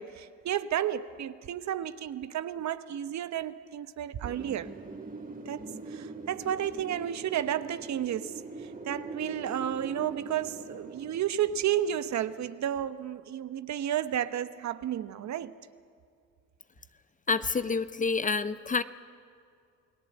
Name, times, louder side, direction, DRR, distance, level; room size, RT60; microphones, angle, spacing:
voice 1, 0.0-4.7 5.5-15.5, right 10 dB, 50° right, 1.1 m, -32 dB
Wind, 4.2-12.9, right 3 dB, 25° right, 2.5 m, -43 dB
voice 2, 17.3-18.8, left 4 dB, 20° left, 0.7 m, -28 dB
29.0 x 18.5 x 7.9 m
supercardioid pair, 85°, 35 cm